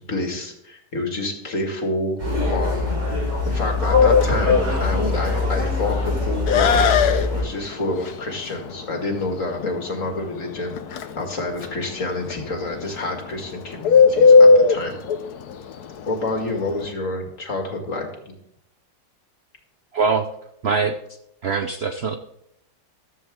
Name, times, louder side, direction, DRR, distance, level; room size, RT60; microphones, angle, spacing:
voice 1, 0.0-6.9 7.3-15.0 16.0-18.3, left 2 dB, 45° left, 3 dB, 2.5 m, -28 dB
sound 1, 2.2-7.4, left 3 dB, 75° right, 6.3 m, -23 dB
Bird, 3.9-16.9, left 4 dB, 65° left, 1.3 m, -19 dB
voice 2, 19.9-20.2 20.6-21.0 21.4-22.2, right 5 dB, 55° right, 7 dB, 0.7 m, -22 dB
14.5 x 13.0 x 3.7 m, 0.77 s
omnidirectional pair, 1.9 m